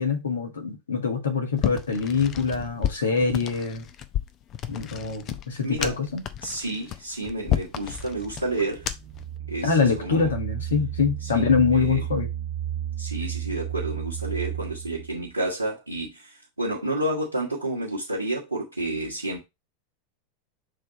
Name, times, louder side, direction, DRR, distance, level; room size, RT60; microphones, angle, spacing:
voice 1, 0.0-3.8 4.7-6.2 9.6-12.3, left 5 dB, 75° left, 1.8 m, -24 dB
sound 1, 1.6-9.2, left 11 dB, 40° left, 0.7 m, -32 dB
voice 2, 5.6-6.0 6.4-8.8 9.5-10.3 11.2-11.4 11.7-12.0 13.0-19.4, right 1 dB, 90° right, 1.3 m, -30 dB
sound 2, 7.4-15.2, right 11 dB, 45° right, 0.4 m, -34 dB
6.6 x 3.5 x 4.1 m
figure-of-eight pair, 90°, 0 cm